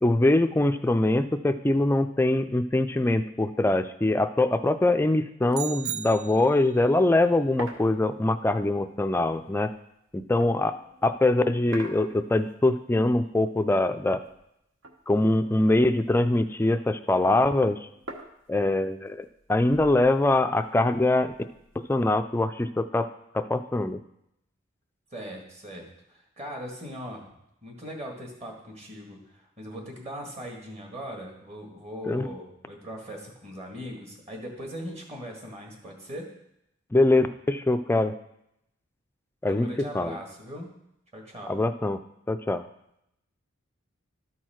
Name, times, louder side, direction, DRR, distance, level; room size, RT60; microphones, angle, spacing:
voice 1, 0.0-9.7 10.1-10.8 11.0-14.2 15.1-17.8 18.5-21.3 21.8-23.1 23.3-24.0 32.1-32.3 36.9-38.1 39.4-39.7 39.9-40.2 41.5-42.0 42.3-42.6, left 2 dB, 10° left, 9 dB, 0.3 m, -23 dB
sound 1, 5.5-6.8, right 10 dB, 85° right, 0.4 m, -36 dB
sound 2, 6.1-6.2 6.4-6.5 6.8-11.1 11.7-12.9 13.2-14.6 14.8-16.6 16.9-22.1, right 2 dB, 65° right, 1.0 m, -47 dB
voice 2, 25.1-27.3 27.6-36.3 39.5-40.7 41.1-41.6, equal, 35° right, 0 dB, 1.8 m, -40 dB
12.5 x 4.6 x 4.4 m, 0.79 s
head